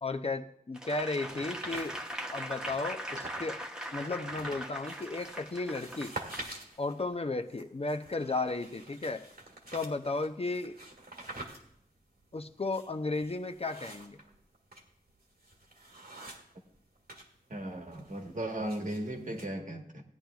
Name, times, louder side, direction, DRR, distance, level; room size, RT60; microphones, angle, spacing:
voice 1, 0.0-1.9 2.3-3.6 3.9-6.1 6.8-9.2 9.7-10.8 12.3-14.2, left 3 dB, 40° left, 7 dB, 0.5 m, -34 dB
Applause / Crowd, 0.7-6.5 7.0-7.1, equal, 5° right, 0.9 m, -40 dB
sound 1, 1.2-3.5 3.8-17.3 17.6-19.5, right 2 dB, 80° right, 1.7 m, -47 dB
voice 2, 17.5-20.0, right 1 dB, 55° right, 3 dB, 1.3 m, -36 dB
17.0 x 10.0 x 2.3 m, 0.69 s
wide cardioid pair, 65°, 16 cm